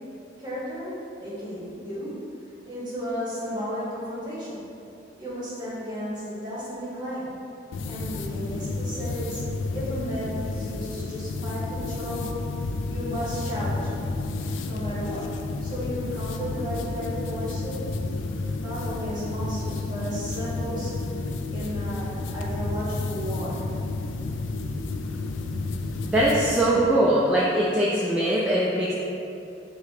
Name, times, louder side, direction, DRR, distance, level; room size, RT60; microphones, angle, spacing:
voice 1, 0.4-2.1 2.6-4.6 5.2-7.3 7.8-9.4 9.7-12.4 12.9-14.0 14.6-15.3 15.6-17.9 18.6-20.9 21.5-23.7, equal, 20° right, -8 dB, 1.2 m, -34 dB
sound 1, 7.7-26.5, left 3 dB, 80° left, 0.3 m, -31 dB
voice 2, 26.1-28.9, right 1 dB, 5° right, -8 dB, 0.3 m, -21 dB
5.0 x 2.2 x 4.9 m, 2.7 s
head